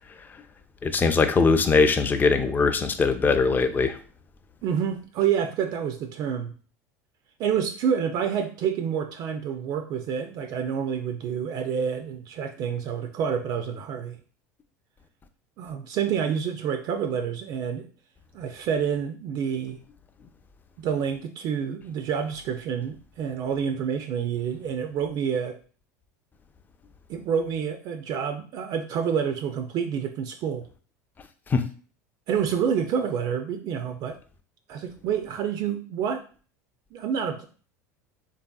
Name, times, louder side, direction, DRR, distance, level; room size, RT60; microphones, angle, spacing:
voice 1, 0.8-4.0 31.5-31.6, left 4 dB, 20° left, 9 dB, 0.4 m, -21 dB
voice 2, 4.6-6.5 7.4-14.2 15.6-17.9 18.3-19.8 20.8-25.6 27.1-30.7 32.3-34.2 34.7-36.2 36.9-37.4, right 7 dB, 50° right, 7 dB, 0.4 m, -28 dB
3.2 x 2.6 x 2.3 m, 0.40 s
hypercardioid pair, 80°, 9 cm